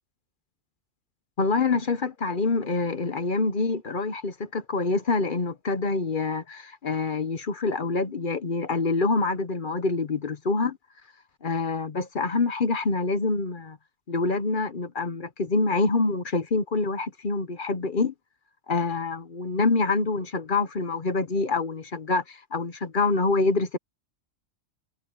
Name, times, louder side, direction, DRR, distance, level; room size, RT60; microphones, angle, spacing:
voice 1, 1.4-10.8 11.4-13.8 14.1-18.1 18.7-23.8, left 3 dB, 45° left, 1.1 m, -26 dB
omnidirectional pair, 1.3 m